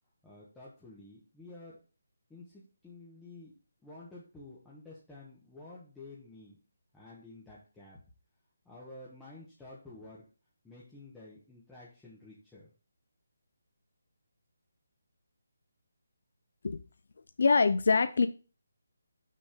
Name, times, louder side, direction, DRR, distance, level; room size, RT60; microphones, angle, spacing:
voice 1, 0.2-1.8 2.3-3.5 3.8-6.6 6.9-8.0 8.6-10.2 10.6-12.7, left 2 dB, 5° left, -8 dB, 1.3 m, -51 dB
voice 2, 17.4-18.3, left 4 dB, 60° left, 10 dB, 0.5 m, -24 dB
6.2 x 4.1 x 5.1 m, 0.35 s
figure-of-eight pair, 165°, 0 cm